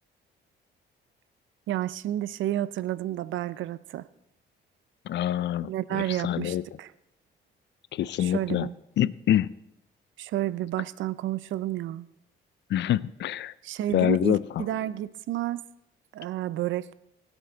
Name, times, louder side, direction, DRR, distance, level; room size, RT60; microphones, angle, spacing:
voice 1, 1.7-4.1 5.6-6.9 8.2-8.7 10.2-12.1 13.6-15.7 16.1-16.9, right 13 dB, 75° right, 18 dB, 0.5 m, -31 dB
voice 2, 5.1-6.6 7.9-8.7 9.0-9.5 12.7-13.5 13.9-14.6, left 11 dB, 60° left, 19 dB, 0.5 m, -26 dB
20.5 x 8.1 x 3.9 m, 0.85 s
cardioid pair, 90°, 20 cm